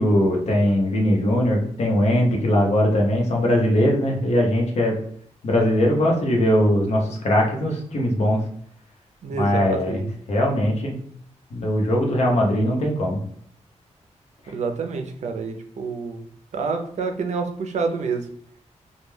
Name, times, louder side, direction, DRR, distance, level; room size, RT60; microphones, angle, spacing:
voice 1, 0.0-5.0 5.4-8.4 9.3-10.0 10.3-10.9 11.5-13.2, left 1 dB, 60° left, 0 dB, 0.7 m, -20 dB
voice 2, 9.2-10.1 14.5-16.3 16.5-18.3, right 4 dB, 70° right, 5 dB, 0.4 m, -28 dB
2.2 x 2.2 x 3.1 m, 0.64 s
wide cardioid pair, 155°, 12 cm